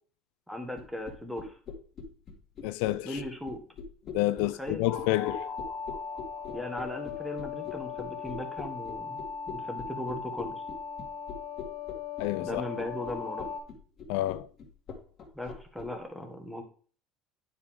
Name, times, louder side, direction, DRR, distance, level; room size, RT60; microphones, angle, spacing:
voice 1, 0.5-1.5 3.0-3.6 4.6-4.8 6.5-10.5 12.4-13.5 15.3-16.6, left 1 dB, ahead, 1.3 m, -38 dB
sound 1, 0.8-15.9, left 5 dB, 35° left, 1.7 m, -42 dB
voice 2, 2.6-3.2 4.1-5.5 12.2-12.7 14.1-14.5, left 17 dB, 80° left, 0.3 m, -29 dB
sound 2, 4.9-13.6, left 6 dB, 60° left, 2.4 m, -38 dB
9.3 x 4.8 x 3.6 m
cardioid pair, 130°, 0 cm